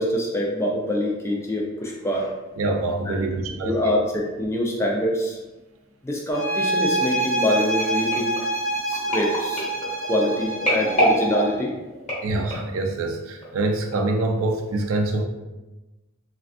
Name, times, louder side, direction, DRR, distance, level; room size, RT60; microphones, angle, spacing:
voice 1, 0.0-2.3 3.1-3.3 3.6-5.4 6.0-8.3 8.9-9.6 10.1-11.7, left 1 dB, 10° left, -1 dB, 0.3 m, -25 dB
voice 2, 2.6-3.8 12.2-15.2, right 2 dB, 75° right, 3 dB, 0.4 m, -25 dB
sound 1, 6.3-11.6, right 2 dB, 60° left, 0.6 m, -26 dB
sound 2, 7.8-12.8 13.4-13.6 13.9-14.0, equal, 35° left, 1.0 m, -27 dB
3.3 x 2.3 x 2.4 m, 1.1 s
head